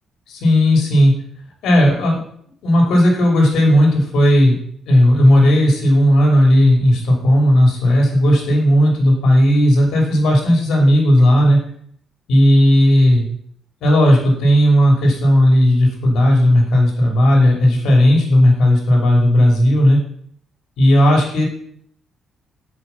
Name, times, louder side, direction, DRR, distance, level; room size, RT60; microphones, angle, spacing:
voice 1, 0.3-1.1 1.6-2.2 2.6-4.6 4.9-11.6 12.3-13.3 13.8-20.0 20.8-21.4, equal, 80° left, 0 dB, 2.9 m, -13 dB
7.6 x 5.7 x 5.7 m, 0.63 s
cardioid pair, 90°, 0 cm